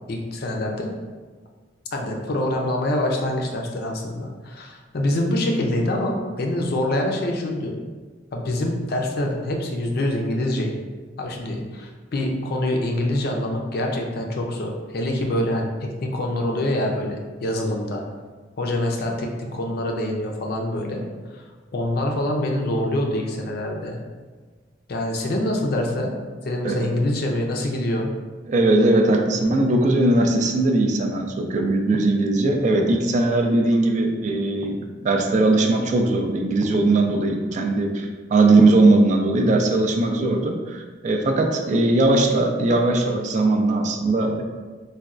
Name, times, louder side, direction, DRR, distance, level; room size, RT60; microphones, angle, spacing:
voice 1, 0.1-0.9 1.9-7.8 8.3-10.7 11.2-18.0 18.6-21.0 21.3-21.4 21.7-24.0 24.9-26.1 26.4-28.1, left 1 dB, 55° left, 1 dB, 0.4 m, -25 dB
voice 2, 28.5-44.4, right 2 dB, 40° right, 3 dB, 0.3 m, -19 dB
4.0 x 2.2 x 2.4 m, 1.4 s
head